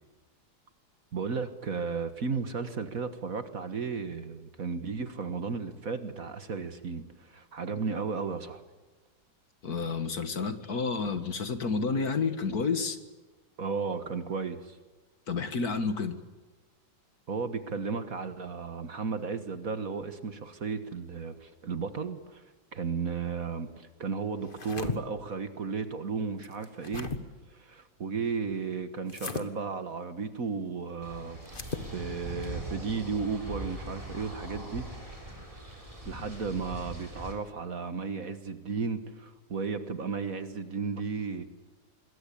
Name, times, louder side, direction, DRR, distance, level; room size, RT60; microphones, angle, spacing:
voice 1, 1.1-8.6 13.6-14.8 17.3-22.4 22.7-27.3 27.5-31.4 31.9-34.9 36.0-41.4, right 5 dB, 50° right, 10 dB, 1.7 m, -34 dB
voice 2, 9.6-13.0 15.3-16.2, left 4 dB, 50° left, 10 dB, 2.0 m, -30 dB
sound 1, 24.4-25.0 26.4-27.2 29.1-29.5 31.5-31.9, left 4 dB, 30° left, 1.6 m, -36 dB
sound 2, 31.0-37.3, right 1 dB, 15° right, 4.6 m, -41 dB
26.0 x 21.0 x 8.6 m, 1.3 s
omnidirectional pair, 2.1 m